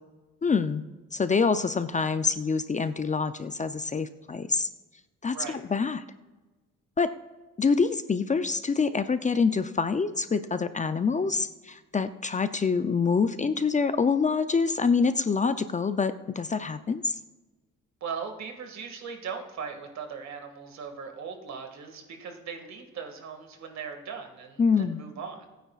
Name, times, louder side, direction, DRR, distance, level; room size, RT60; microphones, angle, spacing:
voice 1, 0.4-0.8 1.1-4.7 5.2-6.0 7.0-7.1 7.6-17.2 24.6-25.0, left 5 dB, 25° left, 11 dB, 0.5 m, -26 dB
voice 2, 18.0-25.5, right 6 dB, 65° right, 4 dB, 2.0 m, -39 dB
20.5 x 9.2 x 2.4 m, 1.2 s
cardioid pair, 90°, 30 cm